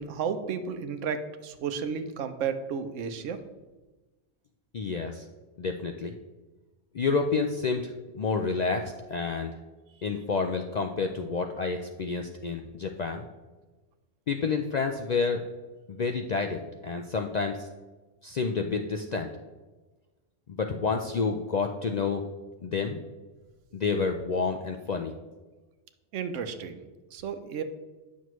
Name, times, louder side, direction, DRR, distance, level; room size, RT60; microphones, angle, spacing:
voice 1, 0.0-3.4 26.1-27.6, right 6 dB, 90° right, 9 dB, 1.0 m, -33 dB
voice 2, 4.7-5.2 5.6-6.1 6.9-9.5 10.0-13.3 14.3-15.4 15.9-17.7 18.2-19.3 20.5-22.2 22.6-23.0 23.7-25.1, left 4 dB, 60° left, 4 dB, 0.4 m, -29 dB
9.3 x 6.3 x 3.1 m, 1.2 s
omnidirectional pair, 1.2 m